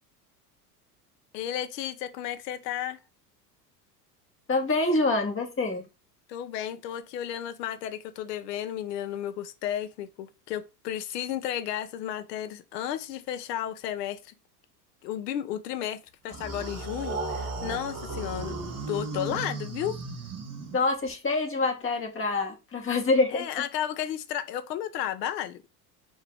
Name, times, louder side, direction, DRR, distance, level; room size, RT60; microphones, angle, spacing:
voice 1, 1.3-3.0 6.3-14.3 15.0-18.6 18.9-20.0 23.3-25.7, left 11 dB, 75° left, 0.8 m, -33 dB
voice 2, 4.5-5.8 20.7-23.6, left 3 dB, 25° left, 1.9 m, -26 dB
sound 1, 16.3-21.1, right 3 dB, 30° right, 1.2 m, -35 dB
4.6 x 2.8 x 3.5 m
hypercardioid pair, 85°, 49 cm